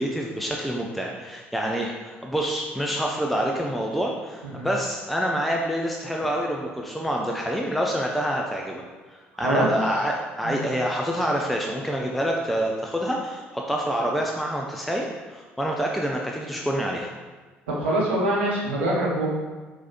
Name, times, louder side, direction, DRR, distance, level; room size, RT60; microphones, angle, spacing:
voice 1, 0.0-8.8 9.4-17.1, equal, ahead, -1 dB, 0.5 m, -27 dB
voice 2, 17.7-19.3, right 1 dB, 80° right, -4 dB, 0.9 m, -24 dB
4.7 x 3.8 x 2.8 m, 1.3 s
figure-of-eight pair, 50°, 6 cm